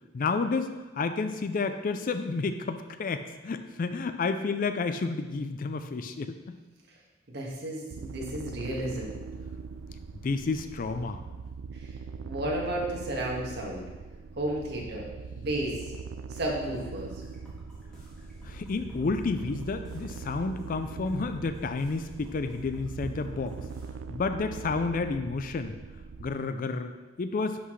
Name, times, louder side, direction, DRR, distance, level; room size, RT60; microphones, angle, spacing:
voice 1, 0.1-6.6 10.1-11.2 18.4-23.6 24.1-25.8 26.2-26.9 27.2-27.6, left 4 dB, 45° left, 9 dB, 0.4 m, -30 dB
voice 2, 7.3-9.1 11.7-11.9 12.2-13.8 14.4-15.8 16.3-17.2, right 1 dB, 55° right, -2 dB, 1.7 m, -33 dB
sound 1, 7.9-26.3, right 5 dB, 80° right, 0.4 m, -42 dB
sound 2, 16.6-23.9, left 1 dB, 5° left, 2.1 m, -52 dB
11.0 x 6.0 x 3.2 m, 1.2 s
head